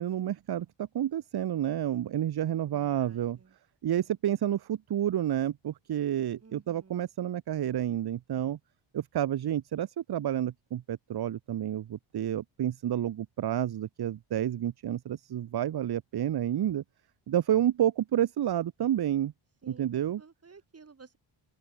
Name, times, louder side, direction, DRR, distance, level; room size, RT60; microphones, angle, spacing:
voice 1, 0.0-3.4 3.8-8.6 8.9-16.8 17.3-19.3 19.8-20.2, right 11 dB, 55° right, 1.0 m, -30 dB
voice 2, 2.6-3.5 6.4-7.1 19.6-21.2, right 5 dB, 30° right, 6.3 m, -54 dB
open air
wide cardioid pair, 150°, 48 cm